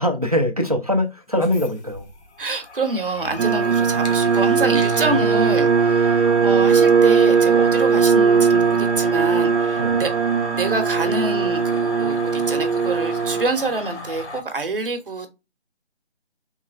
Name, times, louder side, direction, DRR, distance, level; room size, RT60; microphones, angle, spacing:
voice 1, 0.0-2.1 5.0-5.1 9.8-10.1, left 1 dB, 35° right, 0.5 m, -22 dB
sound 1, 1.3-14.4, left 3 dB, 75° left, 1.1 m, -35 dB
voice 2, 2.4-10.1 10.5-15.3, right 3 dB, 50° right, 0.9 m, -26 dB
sound 2, 3.4-13.4, right 5 dB, 80° right, 0.6 m, -18 dB
3.5 x 3.1 x 2.4 m
figure-of-eight pair, 175°, 34 cm